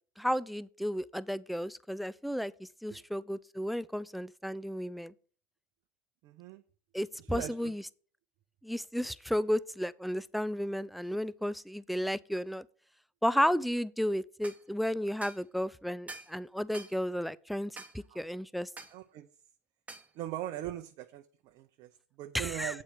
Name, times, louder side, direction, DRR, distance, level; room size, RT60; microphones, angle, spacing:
voice 1, 0.2-5.1 6.9-7.8 8.6-12.6 13.2-18.7 22.3-22.7, equal, ahead, 0.4 m, -33 dB
voice 2, 6.2-6.6 7.2-7.7 18.1-18.3 18.9-19.3 20.1-22.8, right 13 dB, 55° right, 0.7 m, -41 dB
sound 1, 14.4-14.6 15.2-15.4 16.1-16.3 16.7-17.0 17.8-18.0 18.8-19.0 19.9-20.1, right 3 dB, 15° right, 1.2 m, -46 dB
8.5 x 4.4 x 6.4 m
hypercardioid pair, 85°, 9 cm